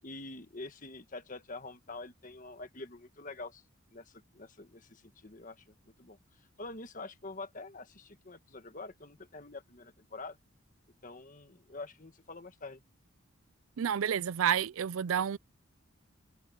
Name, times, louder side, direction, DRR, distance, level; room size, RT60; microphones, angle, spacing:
voice 1, 0.0-3.6 3.9-6.2 6.6-10.4 11.0-12.8, left 3 dB, 40° left, 1.5 m, -46 dB
voice 2, 13.8-15.4, right 8 dB, 80° right, 0.4 m, -29 dB
head